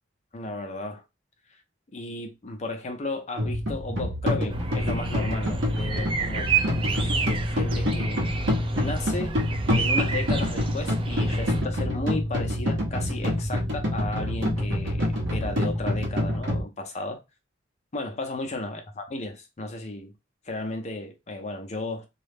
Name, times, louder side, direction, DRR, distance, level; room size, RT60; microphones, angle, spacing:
voice 1, 0.3-1.0 1.9-6.5 6.9-8.2 8.8-9.4 9.7-17.2 17.9-20.1 20.5-22.0, left 2 dB, 35° left, 0.5 m, -34 dB
sound 1, 3.4-16.6, left 1 dB, 75° right, 0.8 m, -27 dB
sound 2, 4.5-11.6, right 5 dB, 25° right, 0.3 m, -30 dB
2.3 x 2.0 x 3.3 m
head